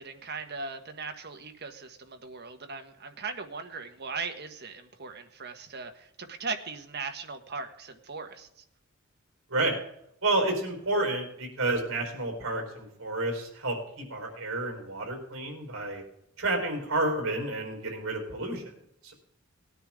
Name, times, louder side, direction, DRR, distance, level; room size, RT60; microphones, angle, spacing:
voice 1, 0.0-8.6, right 4 dB, 50° right, 6 dB, 1.5 m, -39 dB
voice 2, 10.2-16.0 16.4-18.6 19.0-19.1, right 2 dB, 70° right, 3 dB, 4.5 m, -30 dB
19.5 x 10.0 x 3.8 m, 0.76 s
head